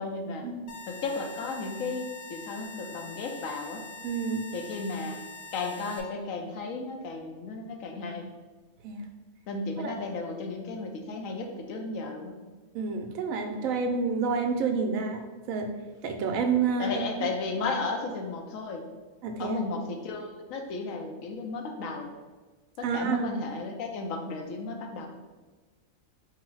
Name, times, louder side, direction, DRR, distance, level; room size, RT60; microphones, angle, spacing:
voice 1, 0.0-0.5 0.9-3.8 4.5-5.2 5.5-8.3 9.5-12.4 16.8-18.8 19.4-22.1 22.8-25.1, left 3 dB, 80° left, 3 dB, 1.0 m, -34 dB
sound 1, 0.7-6.0, left 3 dB, 50° left, 0.8 m, -44 dB
voice 2, 4.0-4.5 8.8-9.1 9.8-9.9 12.7-15.2 15.5-15.7 16.0-17.0 19.2-19.6 22.8-23.3, right 5 dB, 80° right, 5 dB, 1.0 m, -29 dB
4.7 x 2.1 x 4.6 m, 1.3 s
omnidirectional pair, 1.4 m